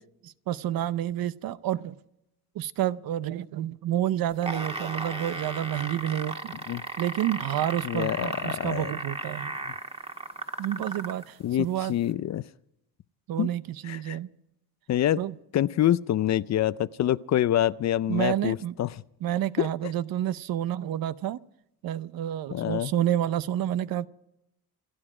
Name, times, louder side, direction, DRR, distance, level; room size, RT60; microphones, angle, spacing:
voice 1, 0.2-2.0 2.5-6.6 7.0-9.5 10.6-11.9 13.3-14.3 15.2-15.3 18.1-18.7 19.2-21.4 21.8-24.1, right 12 dB, 65° right, 0.8 m, -29 dB
sound 1, 4.3-11.2 12.1-12.2, right 2 dB, 15° right, 1.6 m, -35 dB
voice 2, 7.8-8.9 11.4-12.4 13.4-13.5 13.9-14.2 14.9-15.2 15.5-18.9 19.6-19.9 22.5-22.9, left 12 dB, 45° left, 0.5 m, -26 dB
28.0 x 10.0 x 4.9 m
cardioid pair, 120°, 39 cm